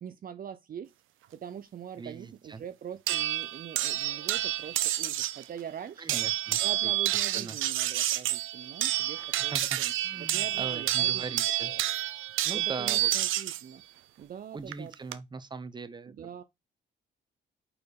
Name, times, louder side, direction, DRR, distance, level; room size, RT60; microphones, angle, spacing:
voice 1, 0.0-0.9 1.3-6.2 6.6-11.8 12.5-13.8 14.2-14.9 16.1-16.4, right 9 dB, 45° right, 0.6 m, -43 dB
voice 2, 2.0-2.6 6.0-6.9 7.3-7.6 9.4-11.7 12.4-13.1 14.5-16.1, right 4 dB, 20° right, 0.8 m, -40 dB
sound 1, 3.1-5.4 6.1-13.6 14.7-15.1, right 14 dB, 85° right, 0.6 m, -29 dB
5.4 x 4.4 x 4.0 m
cardioid pair, 90°, 20 cm